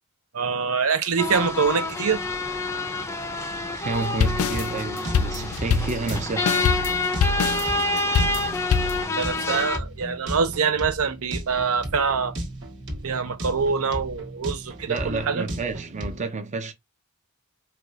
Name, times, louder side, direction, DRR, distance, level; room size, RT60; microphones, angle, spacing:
voice 1, 0.3-2.2 9.2-12.3 13.0-15.4, right 5 dB, 75° right, 0.6 m, -24 dB
sound 1, 1.2-9.8, left 2 dB, 15° left, 0.5 m, -28 dB
voice 2, 3.7-6.5 14.9-16.7, right 3 dB, 35° right, 0.5 m, -30 dB
sound 2, 3.9-9.0, left 6 dB, 80° left, 0.4 m, -24 dB
sound 3, 4.2-16.2, right 1 dB, 60° right, 1.2 m, -36 dB
4.6 x 2.3 x 2.5 m
head